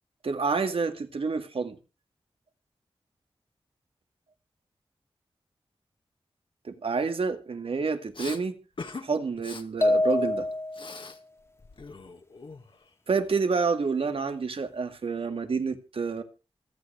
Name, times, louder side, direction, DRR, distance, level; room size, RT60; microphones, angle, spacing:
voice 1, 0.2-1.8 6.6-8.6 9.0-10.5 13.1-16.2, right 4 dB, 75° right, 2.0 m, -28 dB
Respiratory sounds, 8.1-8.4 8.8-9.1 9.4-9.6 10.0-11.2 11.5-12.9, left 4 dB, 60° left, 1.9 m, -41 dB
sound 1, 9.8-11.0, left 1 dB, 30° left, 2.2 m, -25 dB
26.5 x 9.2 x 3.4 m
wide cardioid pair, 85°, 10 cm